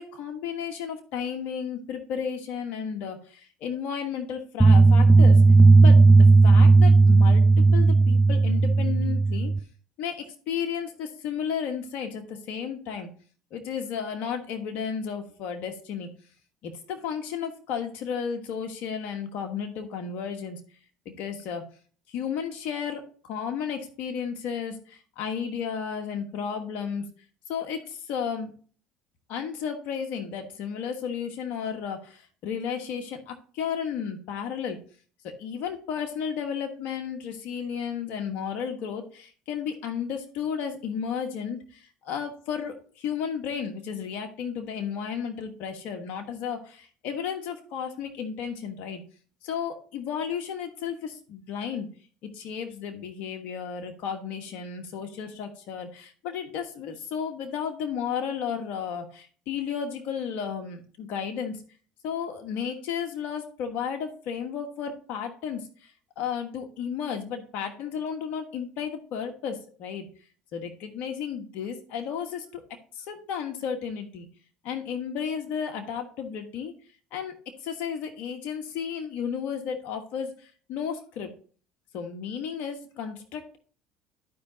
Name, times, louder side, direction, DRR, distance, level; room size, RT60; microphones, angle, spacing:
voice 1, 0.0-5.4 5.8-9.5 10.0-13.1 13.5-16.1 16.6-20.6 21.0-21.6 22.1-27.1 27.5-28.5 29.3-34.8 35.2-49.0 49.4-51.9 52.2-61.6 62.0-70.1 70.5-72.6 72.9-74.3 74.6-76.7 77.1-77.3 77.6-81.3 81.9-83.6, left 7 dB, 65° left, 4 dB, 1.3 m, -33 dB
sound 1, 4.6-9.6, right 3 dB, 5° left, 0.6 m, -15 dB
14.0 x 4.9 x 2.8 m, 0.41 s
supercardioid pair, 95°, 3 cm